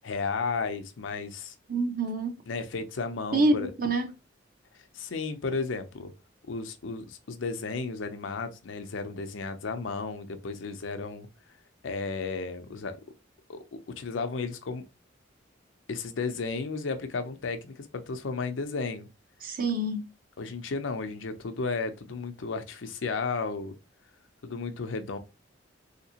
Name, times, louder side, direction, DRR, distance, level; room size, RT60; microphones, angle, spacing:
voice 1, 0.0-1.5 2.5-3.7 4.7-6.1 6.5-11.3 11.8-13.0 13.5-14.8 15.9-19.1 20.4-23.8 24.4-25.2, left 4 dB, 90° left, 0.6 m, -33 dB
voice 2, 1.7-2.4 3.3-4.1 19.4-20.1, right 2 dB, 50° right, 0.7 m, -26 dB
3.5 x 2.9 x 2.8 m
head